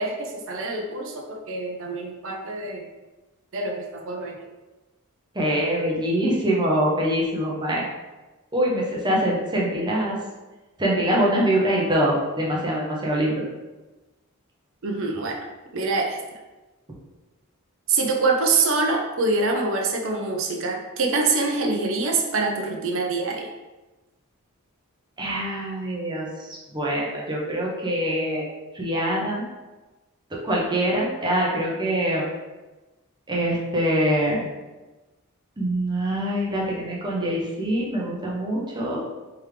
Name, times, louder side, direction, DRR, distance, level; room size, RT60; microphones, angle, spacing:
voice 1, 0.0-2.9 3.5-4.4 14.8-15.4 15.7-16.2 17.9-23.5, right 3 dB, 60° right, 1 dB, 0.6 m, -25 dB
voice 2, 5.3-7.9 8.5-10.2 10.8-13.4 25.2-26.5 26.7-29.4 30.3-32.2 33.3-34.4 35.6-39.0, right 1 dB, 20° right, -4 dB, 0.7 m, -24 dB
3.5 x 3.2 x 3.2 m, 1.1 s
head